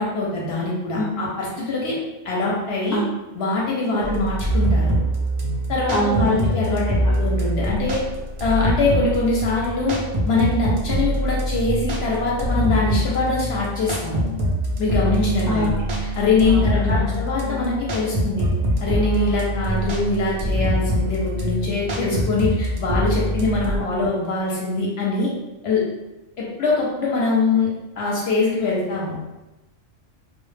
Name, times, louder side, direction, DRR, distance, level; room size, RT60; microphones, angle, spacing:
voice 1, 0.0-2.0 2.2-3.0 3.3-4.9 5.7-8.0 8.4-14.3 14.8-15.7 16.0-18.5 18.8-25.3 25.6-25.8 26.4-27.7 28.0-29.2, left 3 dB, 65° left, -4 dB, 0.7 m, -23 dB
sound 1, 4.0-23.8, equal, 75° right, 0.3 m, -24 dB
voice 2, 5.9-6.5 6.9-7.1 15.5-15.7 16.5-17.1, equal, 25° left, -5 dB, 0.4 m, -24 dB
2.1 x 2.0 x 3.1 m, 1.0 s
omnidirectional pair, 1.3 m